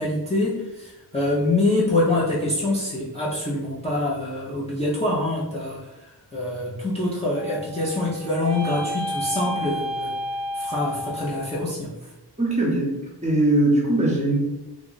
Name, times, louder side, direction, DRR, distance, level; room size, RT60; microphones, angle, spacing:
voice 1, 0.0-5.8 6.3-10.1 10.5-11.9, left 2 dB, 15° left, -8 dB, 0.6 m, -25 dB
sound 1, 7.3-11.6, equal, 45° right, 0.7 m, -31 dB
voice 2, 12.4-12.9 13.2-14.4, right 1 dB, 15° right, -3 dB, 0.9 m, -20 dB
3.0 x 2.4 x 3.8 m, 1.0 s
wide cardioid pair, 135°, 43 cm